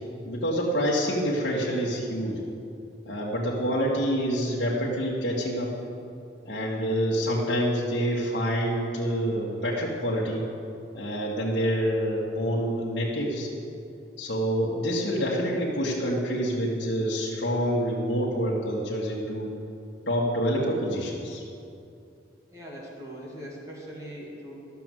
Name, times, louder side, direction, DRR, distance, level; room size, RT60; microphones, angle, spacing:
voice 1, 0.3-2.4 3.1-5.7 6.4-10.4 10.9-13.5 14.2-19.5 20.1-21.4, equal, 65° left, -6 dB, 1.7 m, -27 dB
voice 2, 22.5-24.5, equal, 15° right, -4 dB, 2.2 m, -41 dB
13.0 x 6.9 x 7.7 m, 2.6 s
head